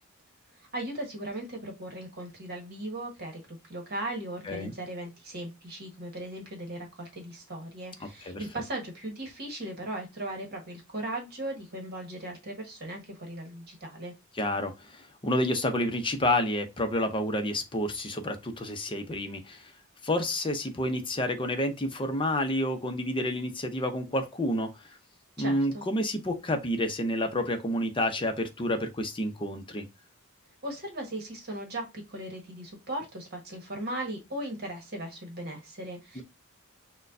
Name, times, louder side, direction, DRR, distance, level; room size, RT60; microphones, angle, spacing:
voice 1, 0.6-14.1 25.4-25.8 30.6-36.2, right 1 dB, 50° right, 1.3 m, -38 dB
voice 2, 14.4-19.7 20.0-24.8 25.4-29.9 36.2-36.3, left 1 dB, 25° left, 0.6 m, -29 dB
6.2 x 2.2 x 2.6 m
head